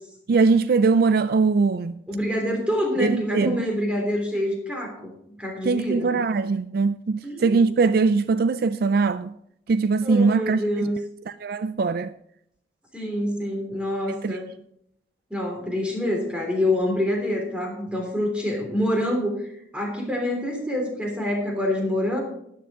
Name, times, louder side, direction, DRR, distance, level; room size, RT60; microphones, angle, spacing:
voice 1, 0.3-2.0 3.0-3.6 5.6-9.3 9.7-10.9 11.3-12.1 14.1-14.4, right 4 dB, 55° right, 0.4 m, -21 dB
voice 2, 2.1-5.1 5.4-6.2 7.2-7.6 10.0-11.0 12.9-14.5 15.3-22.2, left 1 dB, 5° right, 3.3 m, -26 dB
13.5 x 10.0 x 3.8 m
head